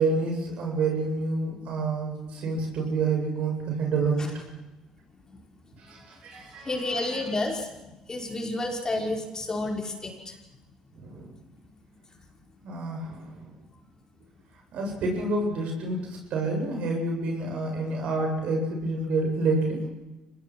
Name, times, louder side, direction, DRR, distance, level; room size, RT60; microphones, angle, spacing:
voice 1, 0.0-4.3 5.8-7.2 10.9-11.3 12.6-13.5 14.7-19.8, right 3 dB, 65° right, 1 dB, 7.9 m, -28 dB
voice 2, 6.6-10.4, left 2 dB, 30° left, 1 dB, 5.8 m, -30 dB
25.5 x 20.0 x 6.4 m, 1.1 s
hypercardioid pair, 60°, 2 cm